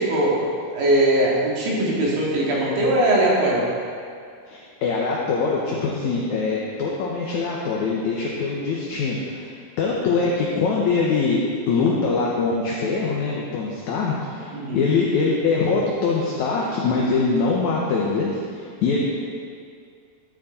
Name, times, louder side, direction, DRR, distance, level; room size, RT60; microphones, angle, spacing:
voice 1, 0.0-3.7 14.5-14.8, right 1 dB, 75° right, -5 dB, 3.7 m, -20 dB
voice 2, 4.5-9.5 9.8-19.0, left 4 dB, 70° left, -3 dB, 2.1 m, -23 dB
12.5 x 8.9 x 4.3 m, 2.3 s
omnidirectional pair, 4.1 m